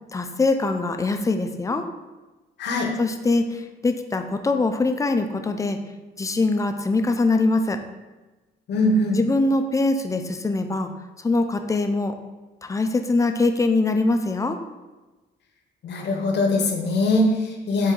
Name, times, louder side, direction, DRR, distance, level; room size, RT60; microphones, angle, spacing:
voice 1, 0.1-1.9 3.0-5.8 6.2-7.8 9.1-10.9 11.2-12.1 12.6-14.6, left 3 dB, 15° left, 7 dB, 0.4 m, -23 dB
voice 2, 8.7-9.2 15.8-17.9, left 1 dB, 60° left, 1 dB, 0.8 m, -22 dB
4.4 x 2.6 x 3.8 m, 1.2 s
cardioid pair, 90°, 20 cm